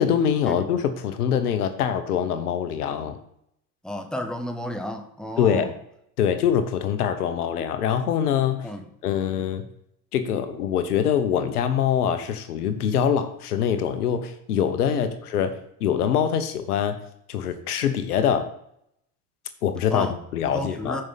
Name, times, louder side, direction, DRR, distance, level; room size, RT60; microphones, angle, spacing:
voice 1, 0.0-3.2 5.4-5.7 6.2-8.7 9.0-9.6 10.1-17.0 17.3-18.5 19.6-21.0, left 8 dB, 90° left, 9 dB, 1.1 m, -24 dB
voice 2, 3.8-5.7 8.6-8.8 14.9-15.1 19.9-20.2 20.5-21.0, left 1 dB, ahead, 5 dB, 1.3 m, -32 dB
13.5 x 5.6 x 4.0 m, 0.75 s
hypercardioid pair, 85°, 44 cm